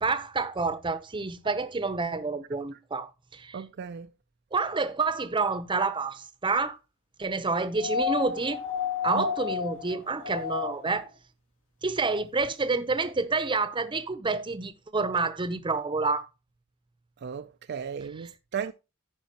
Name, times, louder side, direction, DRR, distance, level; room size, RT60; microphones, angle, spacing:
voice 1, 0.0-3.6 4.5-6.8 7.2-8.6 9.0-11.1 11.8-16.3, right 4 dB, 25° right, 0.7 m, -28 dB
voice 2, 3.5-4.1 9.1-9.3 17.2-18.7, right 7 dB, 50° right, 0.4 m, -35 dB
sound 1, 7.8-11.0 12.4-12.5, left 7 dB, 75° left, 2.2 m, -31 dB
15.0 x 5.1 x 2.9 m
head